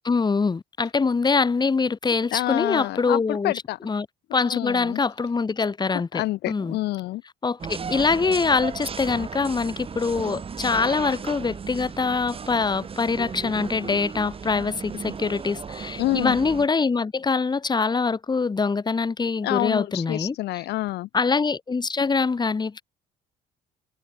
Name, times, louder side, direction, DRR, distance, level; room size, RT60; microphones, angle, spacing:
voice 1, 0.0-3.5 3.8-4.1 4.3-6.8 7.4-20.4 21.1-22.8, left 4 dB, 25° left, 5.2 m, -24 dB
voice 2, 2.3-3.8 4.4-5.0 6.1-7.2 16.0-16.4 19.4-21.1, left 17 dB, 80° left, 1.8 m, -27 dB
sound 1, 7.6-16.7, right 6 dB, 35° right, 4.5 m, -35 dB
cardioid pair, 110°, 17 cm